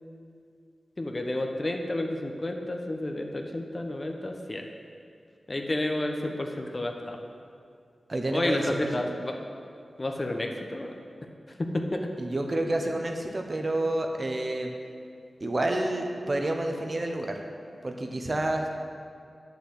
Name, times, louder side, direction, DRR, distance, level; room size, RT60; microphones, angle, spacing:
voice 1, 1.0-4.7 5.5-7.2 8.3-9.4 10.0-10.9 11.6-12.0, left 1 dB, 30° left, 3 dB, 1.0 m, -30 dB
voice 2, 8.1-8.9 12.2-14.7 15.4-17.4 17.8-18.7, right 1 dB, 35° right, 3 dB, 1.0 m, -29 dB
9.4 x 7.1 x 7.9 m, 2.4 s
wide cardioid pair, 105°, 0 cm